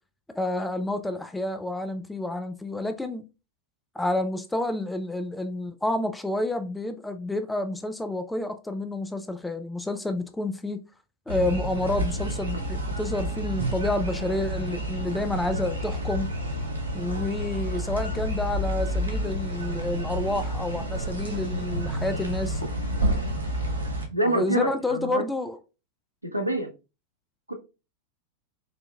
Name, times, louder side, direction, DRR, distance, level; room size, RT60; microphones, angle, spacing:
voice 1, 0.3-3.3 4.0-10.8 11.3-16.3 16.9-22.6 24.2-25.6, left 2 dB, 5° left, 0.4 m, -29 dB
sound 1, 11.3-24.0, right 1 dB, 90° left, 1.2 m, -29 dB
voice 2, 24.1-25.2 26.2-26.7 27.5-27.6, right 1 dB, 90° right, 0.6 m, -26 dB
4.1 x 2.6 x 2.3 m
figure-of-eight pair, 90°, 0 cm